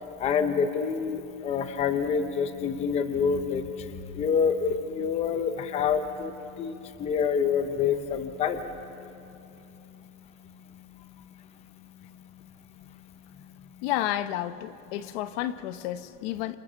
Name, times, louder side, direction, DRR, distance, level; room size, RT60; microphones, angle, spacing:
voice 1, 0.2-8.7 12.0-12.1, left 6 dB, 15° left, 0.7 m, -27 dB
voice 2, 13.8-16.6, left 13 dB, 55° left, 0.9 m, -31 dB
28.0 x 25.5 x 6.8 m
cardioid pair, 175°, 37 cm